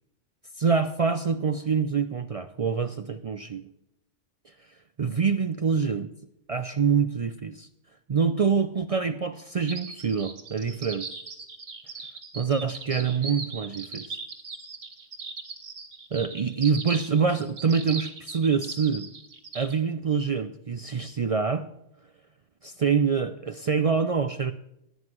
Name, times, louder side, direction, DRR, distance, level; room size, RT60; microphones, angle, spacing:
voice 1, 0.6-3.7 5.0-6.1 6.5-7.7 8.1-11.1 12.3-14.2 16.1-19.1 19.5-21.6 22.6-24.5, right 6 dB, 70° right, 9 dB, 0.3 m, -25 dB
sound 1, 9.7-19.8, right 4 dB, 85° right, 1.8 m, -39 dB
16.5 x 9.6 x 3.0 m, 0.82 s
omnidirectional pair, 1.3 m